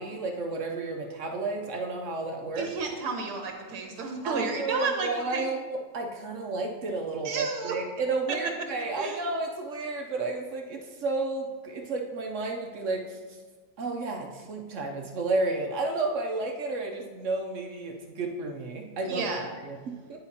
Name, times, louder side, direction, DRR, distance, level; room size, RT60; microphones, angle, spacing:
voice 1, 0.0-2.7 4.2-13.4 13.8-19.3 19.6-20.2, right 3 dB, 60° right, 2 dB, 0.9 m, -32 dB
voice 2, 2.6-5.5 7.2-7.7 9.0-9.2 19.0-19.5, right 4 dB, 80° right, 2 dB, 1.6 m, -32 dB
10.5 x 4.8 x 2.8 m, 1.4 s
omnidirectional pair, 1.7 m